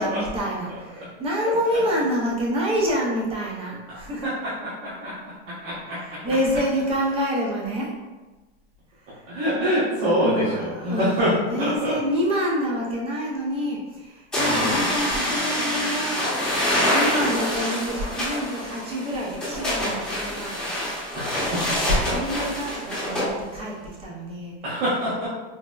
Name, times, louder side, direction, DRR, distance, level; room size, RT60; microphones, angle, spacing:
voice 1, 0.0-4.3 5.9-7.9 9.0-9.3 9.9-16.2 16.9-20.8 21.7-24.5, equal, 15° right, -2 dB, 0.5 m, -27 dB
voice 2, 3.9-4.5 4.8-6.0 9.3-12.0 14.4-14.9 21.1-22.5 24.6-25.3, equal, 55° right, -10 dB, 1.0 m, -26 dB
sound 1, 14.3-23.3, left 1 dB, ahead, 0.9 m, -26 dB
3.9 x 2.0 x 2.2 m, 1.2 s
supercardioid pair, 145°, 34 cm